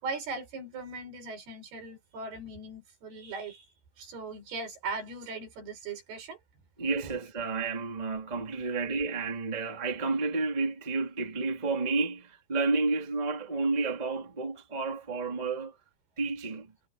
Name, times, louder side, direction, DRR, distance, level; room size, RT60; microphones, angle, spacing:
voice 1, 0.0-3.6 4.0-6.4, right 3 dB, 70° right, 6.7 m, -39 dB
voice 2, 6.8-15.8 16.2-16.7, right 3 dB, 15° right, 2.0 m, -31 dB
omnidirectional pair, 4.7 m